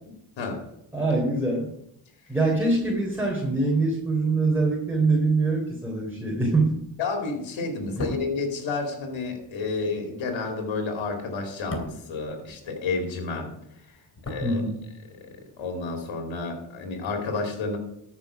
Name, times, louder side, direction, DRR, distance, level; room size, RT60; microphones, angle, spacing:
voice 1, 0.9-1.7 2.3-6.8 14.4-14.8, right 3 dB, 5° right, -3 dB, 3.5 m, -24 dB
voice 2, 7.0-13.6 13.9-14.6 15.2-17.8, left 3 dB, 80° left, 3 dB, 2.6 m, -31 dB
sound 1, 7.8-13.1 13.4-15.2 15.5-15.6, left 1 dB, 35° left, 2.8 m, -39 dB
13.0 x 5.9 x 6.2 m, 0.77 s
cardioid pair, 80°, 45 cm